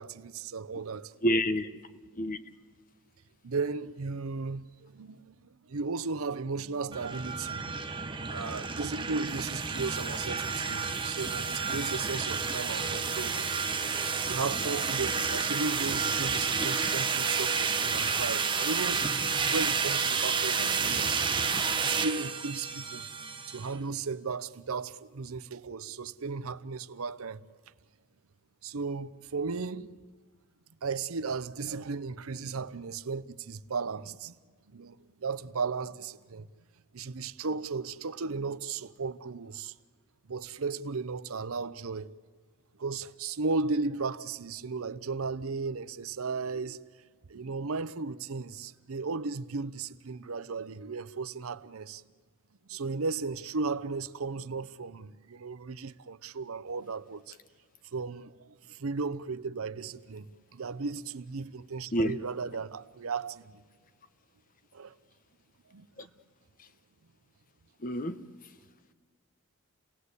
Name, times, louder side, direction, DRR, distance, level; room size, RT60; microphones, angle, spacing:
voice 1, 0.0-1.1 3.4-13.9 14.2-19.0 19.4-21.2 21.8-23.1 23.5-27.4 28.6-29.9 30.8-34.3 34.7-36.5 36.9-39.7 40.3-42.1 42.8-46.8 47.3-52.0 52.7-57.4 57.9-63.6 64.7-65.0 65.7-66.1, right 4 dB, 90° right, 0.7 m, -35 dB
voice 2, 1.2-1.7 2.2-2.4 61.9-62.1 67.8-68.2, equal, 40° left, 0.9 m, -27 dB
sound 1, 6.9-23.7, right 5 dB, 25° right, 0.9 m, -30 dB
29.5 x 18.0 x 8.2 m
head